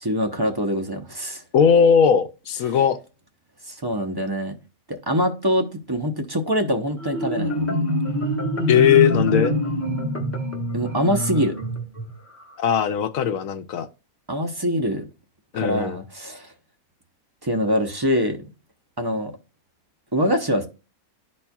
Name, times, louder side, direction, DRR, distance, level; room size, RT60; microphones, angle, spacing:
voice 1, 0.0-1.4 3.7-4.5 4.9-7.7 10.7-11.5 14.3-15.0 15.6-16.5 17.4-18.4 19.0-19.3 20.1-20.7, equal, 25° right, 0.6 m, -24 dB
voice 2, 1.5-3.0 8.7-9.5 12.6-13.9 15.5-16.0, left 7 dB, 70° left, 1.0 m, -18 dB
Marimba xylophone, 7.0-12.5, left 1 dB, 10° left, 1.3 m, -25 dB
12.0 x 4.2 x 2.3 m
omnidirectional pair, 1.5 m